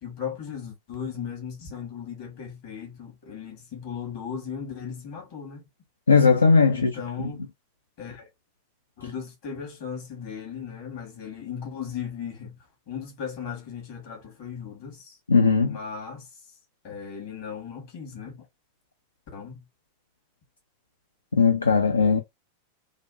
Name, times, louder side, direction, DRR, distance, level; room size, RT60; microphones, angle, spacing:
voice 1, 0.0-5.6 6.7-7.4 8.0-8.3 9.0-12.6 12.9-15.2 15.6-16.3 16.8-18.4 19.3-19.6, left 7 dB, 50° left, 1.6 m, -37 dB
voice 2, 6.1-7.0 15.3-15.8 21.3-22.2, left 4 dB, 75° left, 0.3 m, -18 dB
3.2 x 2.4 x 2.4 m
figure-of-eight pair, 90°, 0 cm